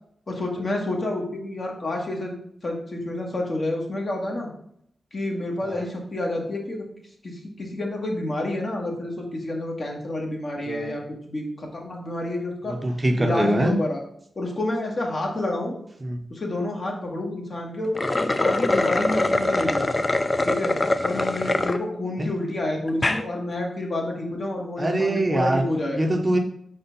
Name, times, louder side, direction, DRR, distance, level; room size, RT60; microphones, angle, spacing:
voice 1, 0.3-2.3 2.6-4.5 5.1-6.8 7.2-12.7 13.2-14.0 14.3-15.7 16.3-19.8 20.4-20.7 21.0-26.0, left 1 dB, 45° left, 0 dB, 1.5 m, -29 dB
voice 2, 12.7-13.7 16.0-16.2 22.2-22.3 24.8-25.7 25.9-26.4, right 1 dB, 20° right, 4 dB, 0.7 m, -23 dB
sound 1, 17.8-21.8 22.3-22.4 22.9-23.2, left 2 dB, 25° left, 0.4 m, -23 dB
4.5 x 4.3 x 5.2 m, 0.71 s
wide cardioid pair, 100°, 0 cm